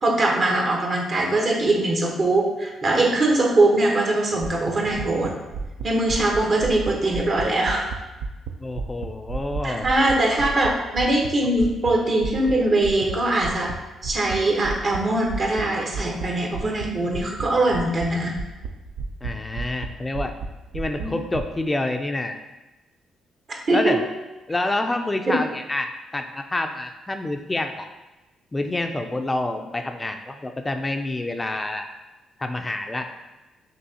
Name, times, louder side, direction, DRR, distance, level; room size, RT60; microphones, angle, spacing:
voice 1, 0.0-5.3 5.8-7.9 9.6-13.7 14.0-18.4 21.0-21.2 23.7-24.0 25.3-25.4, right 2 dB, 50° right, 0 dB, 1.0 m, -22 dB
sound 1, 4.4-8.5 8.8-11.9 12.2-12.5 12.8-13.1 13.4-13.8 14.0-14.4 14.6-15.0 15.2-15.6 15.9-16.3 16.5-16.9 17.1-17.5 17.7-18.1 18.4-19.3 19.6-19.9 20.1-20.5 20.7-21.4, right 5 dB, 85° right, 0.4 m, -31 dB
voice 2, 8.6-9.9 19.2-20.3 20.7-22.4 23.7-24.0 24.5-27.9 28.5-31.9 32.4-33.1, left 2 dB, 20° left, 5 dB, 0.3 m, -27 dB
5.5 x 2.9 x 2.7 m, 1.1 s
cardioid pair, 75°, 0 cm